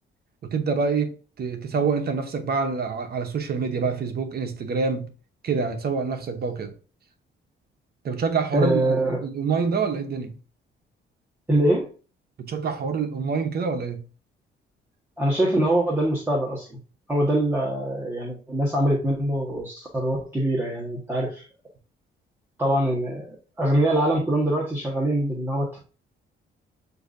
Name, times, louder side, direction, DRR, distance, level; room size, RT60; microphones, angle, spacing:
voice 1, 0.4-5.1 5.4-6.8 8.0-10.4 12.4-14.0, right 5 dB, 50° right, 0.8 m, -26 dB
voice 2, 8.5-9.2 11.5-11.8 15.2-16.8 17.1-21.5 22.6-25.8, right 1 dB, 10° right, 1.2 m, -23 dB
7.8 x 2.7 x 2.5 m
cardioid pair, 90°, 20 cm